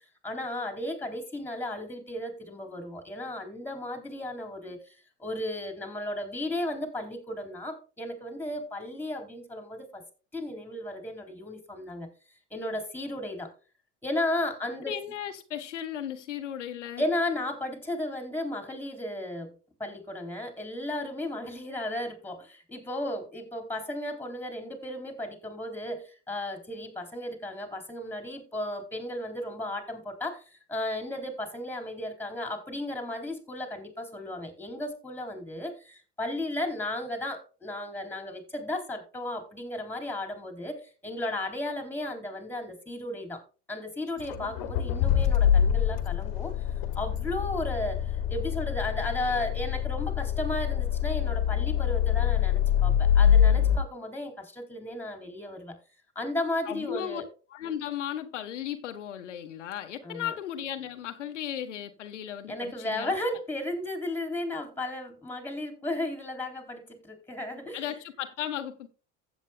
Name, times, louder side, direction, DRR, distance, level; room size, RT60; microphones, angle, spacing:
voice 1, 0.2-10.0 10.3-12.1 12.5-13.5 14.0-15.0 17.0-19.5 19.8-43.4 43.7-46.5 47.0-55.8 56.2-57.2 60.0-60.3 62.5-67.9, left 1 dB, 5° left, 3.6 m, -34 dB
voice 2, 14.8-17.0 56.6-57.2 57.5-63.1 67.7-68.9, left 10 dB, 85° left, 1.3 m, -36 dB
Accelerating revving vroom, 44.2-53.8, left 9 dB, 60° left, 1.6 m, -25 dB
15.5 x 8.4 x 2.2 m
hypercardioid pair, 85°, 35 cm